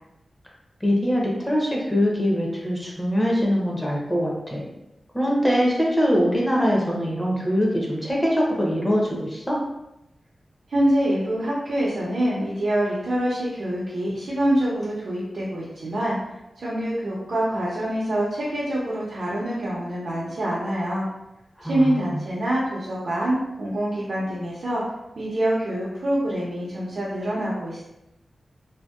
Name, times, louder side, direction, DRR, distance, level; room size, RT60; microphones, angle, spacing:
voice 1, 0.8-4.6 5.1-9.6 21.6-22.2, equal, 10° left, -3 dB, 0.6 m, -23 dB
voice 2, 10.7-16.2 16.6-21.1 21.6-24.8 25.2-27.8, right 1 dB, 65° right, -7 dB, 0.6 m, -25 dB
2.6 x 2.1 x 2.3 m, 0.89 s
wide cardioid pair, 90°, 0 cm